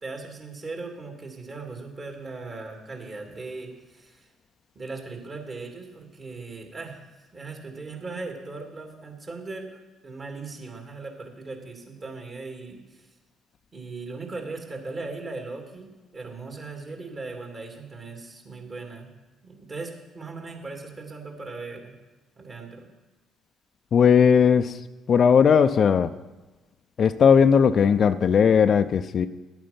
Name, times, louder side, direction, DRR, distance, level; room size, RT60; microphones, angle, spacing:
voice 1, 0.0-4.3 4.7-7.0 7.3-13.1 13.7-19.1 19.4-21.9 22.4-22.9, right 3 dB, 40° right, 2 dB, 2.7 m, -38 dB
voice 2, 23.9-24.8 25.1-26.1 27.0-29.3, left 7 dB, 50° left, 11 dB, 0.5 m, -18 dB
11.0 x 8.9 x 5.7 m, 1.2 s
hypercardioid pair, 50°, 0 cm